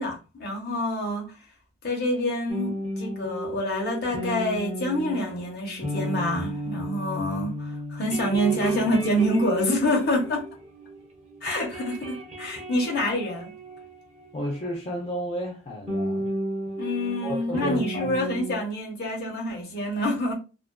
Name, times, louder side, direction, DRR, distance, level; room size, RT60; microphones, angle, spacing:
voice 1, 0.0-1.3 1.8-10.5 11.4-13.5 16.8-20.3, left 1 dB, 45° left, 0.8 m, -27 dB
sound 1, 2.5-11.0 11.2-14.7 15.9-18.6, right 1 dB, 30° right, 0.6 m, -33 dB
voice 2, 14.3-16.3 17.2-18.1, equal, 30° left, 0.4 m, -32 dB
2.4 x 2.2 x 2.2 m
head